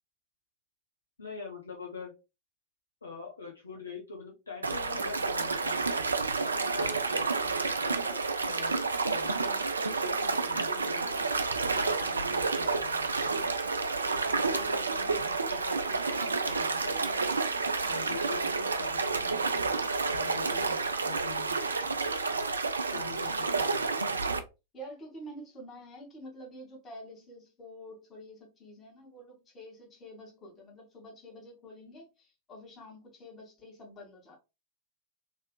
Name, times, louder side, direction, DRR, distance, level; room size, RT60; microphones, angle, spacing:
voice 1, 1.2-2.1 3.0-6.0 6.5-9.7 10.0-11.1 11.7-13.1 13.4-13.6 14.3-17.1 17.8-21.9 22.9-24.1, left 5 dB, 75° left, -1 dB, 0.7 m, -44 dB
sound 1, 4.6-24.4, right 4 dB, 75° right, 0.4 m, -30 dB
voice 2, 15.0-15.3 23.4-23.6 23.9-24.2 24.7-34.4, equal, 25° left, 0 dB, 1.4 m, -48 dB
3.2 x 2.8 x 2.2 m, 0.27 s
figure-of-eight pair, 90°, 0 cm